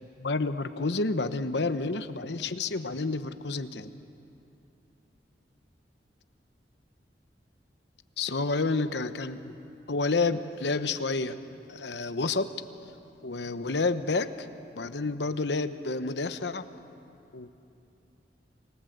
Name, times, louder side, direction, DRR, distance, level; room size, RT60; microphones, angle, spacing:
voice 1, 0.2-3.9 8.2-9.5 9.9-11.4 11.7-12.5 13.2-14.5 14.8-16.7 17.3-17.5, left 3 dB, 75° left, 11 dB, 0.9 m, -29 dB
30.0 x 19.0 x 8.0 m, 2.8 s
head